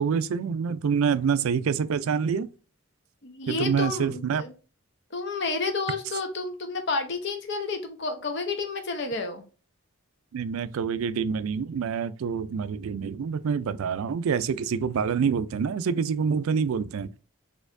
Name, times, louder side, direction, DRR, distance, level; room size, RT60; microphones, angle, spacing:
voice 1, 0.0-2.5 3.5-4.4 10.3-17.1, right 6 dB, 85° right, 0.4 m, -26 dB
voice 2, 3.2-4.5 5.1-9.4, left 3 dB, 55° left, 0.8 m, -30 dB
4.2 x 2.6 x 2.5 m
head